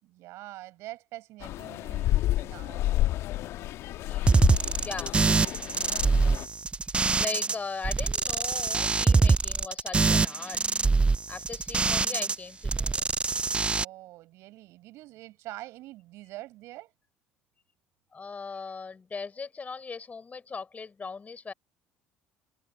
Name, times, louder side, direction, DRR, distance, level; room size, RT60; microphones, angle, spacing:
voice 1, 0.0-2.8 7.5-7.6 11.7-11.9 13.6-16.9, right 17 dB, 60° right, 7.8 m, -45 dB
sound 1, 1.4-6.5, left 15 dB, 55° left, 1.6 m, -30 dB
voice 2, 4.0-5.2 7.2-10.6 11.3-13.0 18.1-21.5, left 4 dB, 30° left, 4.3 m, -39 dB
sound 2, 4.3-7.5 7.8-12.3 12.6-13.8, right 4 dB, 20° right, 0.5 m, -24 dB
figure-of-eight pair, 55°, 5 cm